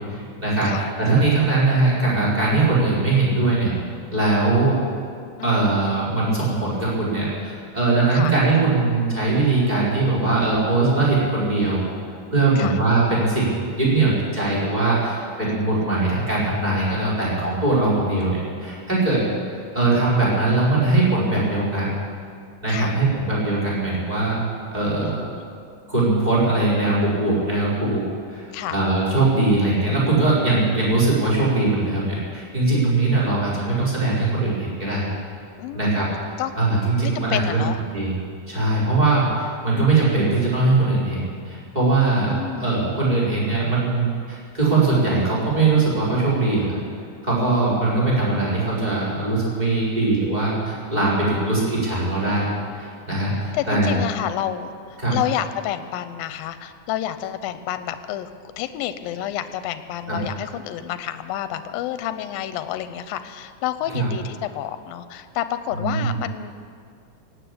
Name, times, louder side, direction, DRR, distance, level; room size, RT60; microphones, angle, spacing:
voice 1, 0.1-3.7 4.1-4.9 5.4-11.8 12.3-19.2 19.7-21.9 22.6-24.4 24.7-25.2 25.9-28.0 28.3-35.0 35.7-37.6 37.9-38.1 38.5-46.8 47.2-52.5 52.7-54.0 55.0-55.2 60.1-60.2 63.9-64.1 65.7-66.2, right 3 dB, 10° right, -8 dB, 4.9 m, -21 dB
voice 2, 5.4-5.8 8.1-8.3 12.6-12.8 15.4-15.8 22.7-23.0 25.0-25.4 28.5-28.8 35.6-36.1 36.4-36.5 37.0-37.8 42.3-42.8 53.3-58.3 58.6-66.5, left 12 dB, 80° left, 11 dB, 2.5 m, -30 dB
17.5 x 9.2 x 8.6 m, 2.2 s
omnidirectional pair, 4.2 m